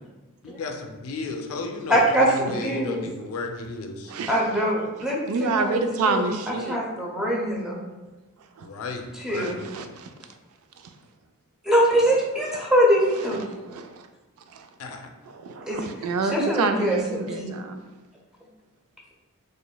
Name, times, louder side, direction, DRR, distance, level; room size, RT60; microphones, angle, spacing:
voice 1, 0.4-4.1 8.6-9.7 14.8-15.0, left 3 dB, 70° left, 4 dB, 0.4 m, -34 dB
voice 2, 1.9-3.0 4.3-7.8 9.2-9.6 11.6-13.5 15.7-15.8 16.3-17.5, equal, 5° right, -4 dB, 0.6 m, -23 dB
voice 3, 4.1-4.4 5.3-6.8 8.6-8.7 9.4-10.1 13.3-14.0 14.5-14.7 15.4-17.8, right 3 dB, 75° right, 7 dB, 0.3 m, -28 dB
4.0 x 3.1 x 2.2 m, 1.1 s
head